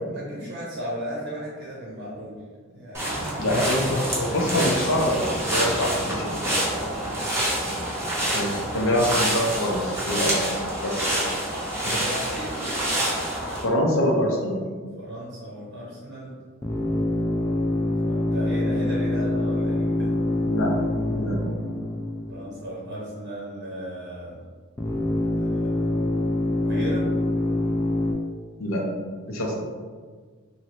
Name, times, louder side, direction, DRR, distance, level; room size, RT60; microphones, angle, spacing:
voice 1, 0.1-2.4 2.7-3.4 6.7-7.9 11.9-12.8 15.0-16.3 18.0-20.1 22.3-24.3 25.2-25.9 26.6-27.1, equal, 65° right, -5 dB, 0.7 m, -36 dB
sound 1, 2.9-13.6, right 1 dB, 15° right, 0.7 m, -27 dB
voice 2, 3.4-6.3 8.3-10.4 10.8-11.2 11.8-11.9 13.6-14.6 20.4-20.8 21.1-21.4 28.6-28.9 29.3-29.6, left 1 dB, 85° left, -2 dB, 0.6 m, -25 dB
sound 2, 16.6-22.9 24.8-28.1, left 1 dB, 15° left, 0.3 m, -25 dB
3.1 x 2.7 x 2.8 m, 1.5 s
head